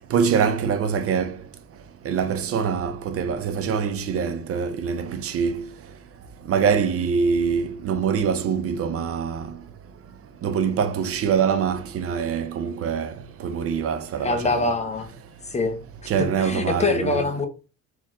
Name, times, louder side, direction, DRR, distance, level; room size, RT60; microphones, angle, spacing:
voice 1, 0.1-1.4 2.0-5.7 6.5-9.5 10.4-13.1 13.4-14.7 16.1-17.2, right 6 dB, 50° right, 0.5 m, -24 dB
voice 2, 14.2-15.1 15.4-15.8 16.2-17.5, left 3 dB, 20° left, 0.7 m, -24 dB
4.4 x 3.0 x 3.6 m
cardioid pair, 160°, 31 cm